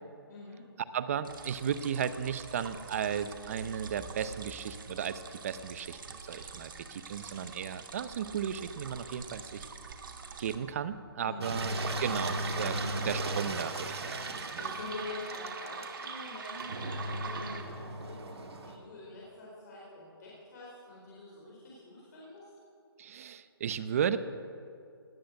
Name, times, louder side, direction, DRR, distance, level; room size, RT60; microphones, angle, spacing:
voice 1, 0.3-0.6 11.2-11.5 14.5-18.2 18.6-22.5, left 3 dB, 45° left, -6 dB, 4.3 m, -46 dB
voice 2, 0.9-9.6 10.4-14.5 23.0-24.2, right 8 dB, 35° right, 13 dB, 0.7 m, -35 dB
sound 1, 1.2-10.6 11.5-17.6, right 5 dB, 55° right, 1.8 m, -43 dB
Engine, 11.4-18.8, right 1 dB, 80° right, 2.0 m, -37 dB
18.5 x 8.7 x 8.2 m, 2.4 s
hypercardioid pair, 160°, 13 cm